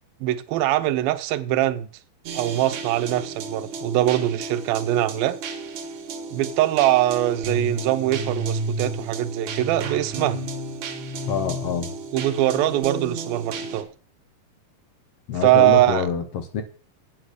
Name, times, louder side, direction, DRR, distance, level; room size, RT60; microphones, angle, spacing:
voice 1, 0.2-1.9 2.3-5.4 6.3-10.4 12.1-13.9 15.4-16.1, right 14 dB, 85° right, 2.5 m, -22 dB
sound 1, 2.3-13.8, right 3 dB, 60° right, 2.5 m, -32 dB
voice 2, 11.3-12.0 15.3-16.6, left 6 dB, 60° left, 1.8 m, -26 dB
8.6 x 8.1 x 6.4 m
omnidirectional pair, 4.2 m